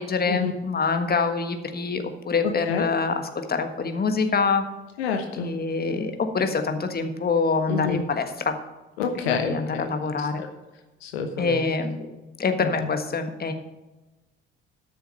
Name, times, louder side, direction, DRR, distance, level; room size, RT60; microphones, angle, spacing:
voice 1, 0.0-4.6 5.4-8.6 9.1-10.4 11.4-12.0 12.4-13.5, left 4 dB, 30° left, 7 dB, 1.5 m, -25 dB
voice 2, 2.4-2.8 5.0-5.5 7.7-8.0 9.0-9.9 10.2-10.5 11.0-11.6 12.6-12.9, left 5 dB, 75° left, 5 dB, 1.0 m, -28 dB
12.5 x 6.8 x 5.5 m, 1.1 s
figure-of-eight pair, 50°, 31 cm